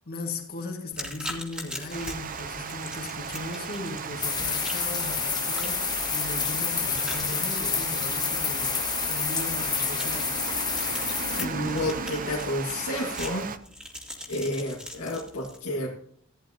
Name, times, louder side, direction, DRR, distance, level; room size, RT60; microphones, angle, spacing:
voice 1, 0.1-5.8 6.1-8.7 9.0-10.3, left 2 dB, 45° left, 1.9 m, -37 dB
sound 1, 0.9-15.6, equal, 5° right, 2.2 m, -42 dB
Water, 1.9-13.6, right 5 dB, 40° right, 0.6 m, -36 dB
sound 2, 4.2-11.4, left 6 dB, 20° left, 0.9 m, -29 dB
voice 2, 11.4-13.5 14.3-15.9, left 1 dB, 85° left, 1.9 m, -30 dB
15.5 x 10.5 x 2.8 m
head